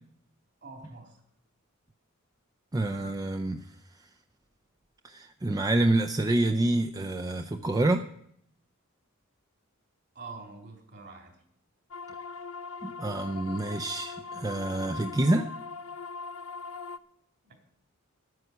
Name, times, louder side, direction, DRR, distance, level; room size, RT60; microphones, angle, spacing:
voice 1, 0.6-1.2 10.2-11.4 17.4-17.5, right 3 dB, 55° right, 3 dB, 3.7 m, -45 dB
voice 2, 2.7-3.6 5.0-8.0 12.8-15.5, right 2 dB, 15° right, 5 dB, 0.5 m, -27 dB
sound 1, 11.9-17.0, left 4 dB, 75° left, 0.7 m, -40 dB
11.0 x 9.5 x 8.0 m, 0.71 s
head